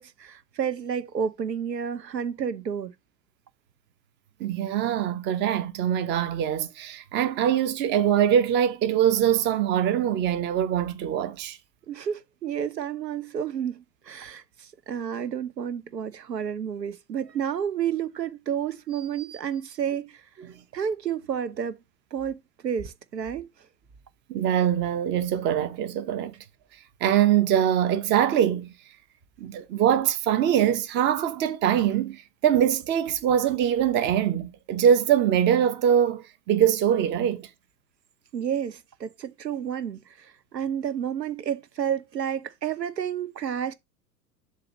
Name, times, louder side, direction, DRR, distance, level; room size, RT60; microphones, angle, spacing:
voice 1, 0.0-2.9 11.9-20.2 20.7-21.8 22.1-23.5 38.3-43.7, right 8 dB, 80° right, 0.8 m, -30 dB
voice 2, 4.4-11.6 24.3-26.3 27.0-28.7 29.4-37.5, right 9 dB, 20° right, 0.7 m, -23 dB
7.7 x 2.8 x 5.9 m
figure-of-eight pair, 95°, 49 cm